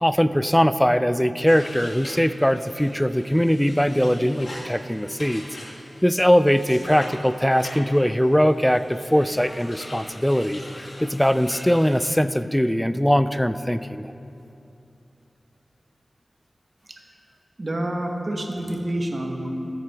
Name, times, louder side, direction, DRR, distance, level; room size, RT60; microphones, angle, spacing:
voice 1, 0.0-5.5 6.0-14.1, equal, 5° left, 12 dB, 0.3 m, -21 dB
sound 1, 1.5-12.1, left 1 dB, 65° left, 1.6 m, -42 dB
voice 2, 17.6-19.7, right 1 dB, 45° right, 1 dB, 1.1 m, -28 dB
13.5 x 8.1 x 3.5 m, 2.8 s
wide cardioid pair, 80°, 0 cm